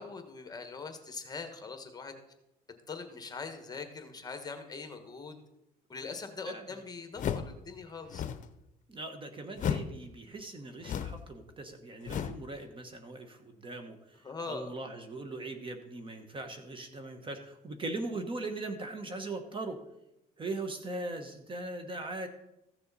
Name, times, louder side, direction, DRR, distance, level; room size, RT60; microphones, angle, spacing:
voice 1, 0.0-2.1 2.9-5.4 5.9-8.2 14.2-14.7, left 4 dB, 25° left, 6 dB, 1.4 m, -42 dB
voice 2, 6.4-6.8 8.9-19.8 20.4-22.3, right 2 dB, 30° right, 6 dB, 1.2 m, -40 dB
sound 1, 7.2-7.6 8.0-8.5 9.6-10.0 10.8-11.3 12.1-12.5, left 8 dB, 50° left, 0.7 m, -34 dB
15.0 x 6.9 x 4.1 m, 0.88 s
cardioid pair, 110°, 17 cm